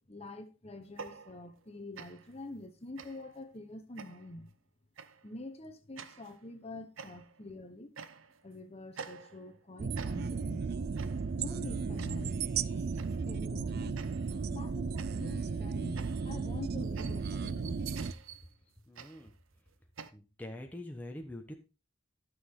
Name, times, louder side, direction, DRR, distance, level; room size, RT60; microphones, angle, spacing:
voice 1, 0.1-4.5 5.2-7.9 8.4-10.7 11.4-12.4 12.6-12.9 13.2-14.0 14.5-17.8, left 1 dB, 30° left, 1.1 m, -46 dB
sound 1, 0.8-1.7 2.0-2.4 3.0-3.4 4.0-4.4 5.0-5.3 6.0-6.4 7.0-7.5 8.0-8.5 9.0-9.6 10.0-10.5 11.0-11.4 12.0-12.4 13.0-13.3 14.0-14.5 15.0-20.1, right 6 dB, 90° right, 0.8 m, -49 dB
sound 2, 9.8-18.1, right 5 dB, 50° right, 0.4 m, -35 dB
voice 2, 18.9-19.3 20.1-21.5, left 1 dB, 10° left, 1.1 m, -44 dB
13.0 x 6.4 x 3.8 m
head